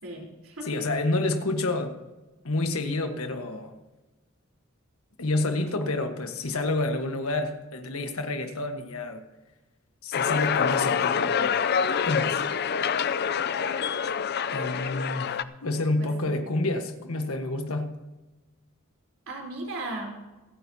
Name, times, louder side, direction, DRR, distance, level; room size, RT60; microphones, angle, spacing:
voice 1, 0.0-0.7 13.6-13.8 16.0-16.4 19.3-20.2, right 2 dB, 70° right, -2 dB, 3.9 m, -37 dB
voice 2, 0.6-2.0 2.4-3.7 5.2-9.2 10.0-11.6 12.0-12.4 14.5-17.9, left 2 dB, 80° left, 6 dB, 1.4 m, -29 dB
sound 1, 10.1-15.4, left 7 dB, 50° left, 0.5 m, -26 dB
26.5 x 9.2 x 2.8 m, 1.1 s
head